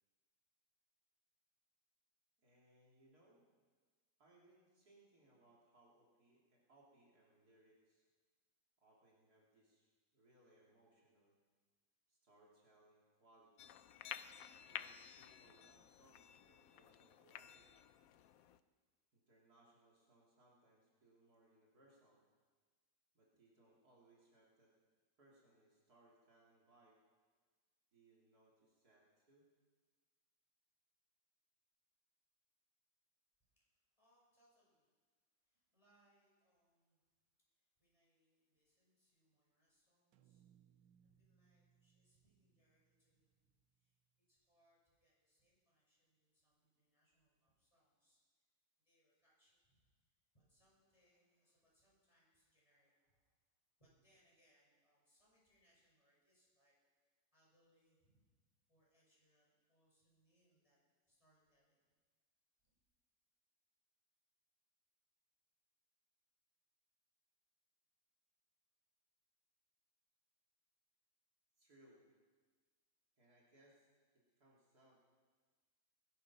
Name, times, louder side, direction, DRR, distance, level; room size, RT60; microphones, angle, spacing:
voice 1, 2.4-3.4 4.2-8.0 8.8-9.9 10.1-11.4 12.1-13.7 14.6-17.7 19.1-22.2 23.1-24.7 25.2-27.0 27.9-29.5 71.6-72.1 73.2-73.9 74.1-75.0, right 1 dB, 55° right, -4 dB, 3.1 m, -70 dB
sound 1, 13.6-18.6, left 10 dB, 65° left, 0.9 m, -53 dB
voice 2, 33.6-34.9 35.4-37.0 37.5-40.4 41.0-43.9 44.2-48.4 48.8-53.3 53.8-56.7 57.3-58.3 58.7-60.8 61.1-61.8 62.6-62.8, equal, 15° left, -6 dB, 6.3 m, -78 dB
sound 2, 40.1-44.3, right 9 dB, 85° right, 1.5 m, -73 dB
20.0 x 11.5 x 5.9 m, 1.5 s
omnidirectional pair, 1.9 m